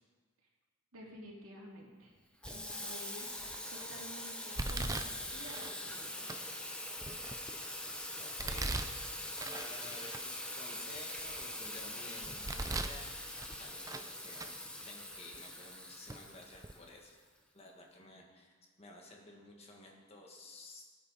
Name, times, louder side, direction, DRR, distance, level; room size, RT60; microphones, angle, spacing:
voice 1, 0.9-2.1 2.5-3.3 3.7-6.5, equal, 80° right, -2 dB, 2.8 m, -51 dB
Water tap faucet / Sink (filling or washing), 2.4-17.2, left 1 dB, 5° left, 0.9 m, -43 dB
Domestic sounds home sounds, 2.4-2.8 3.4-3.8 4.6-5.7 6.3-6.4 7.0-7.7 8.4-9.7 10.1-10.2 10.8-11.7 12.2-13.0 13.4-14.1 14.4-14.5 15.3-15.4 16.1-16.2 16.5-16.7, right 2 dB, 15° right, 0.5 m, -40 dB
voice 2, 8.2-14.4 14.8-17.2 17.5-20.9, left 2 dB, 30° left, 0 dB, 1.7 m, -54 dB
19.0 x 8.7 x 4.2 m, 1.4 s
head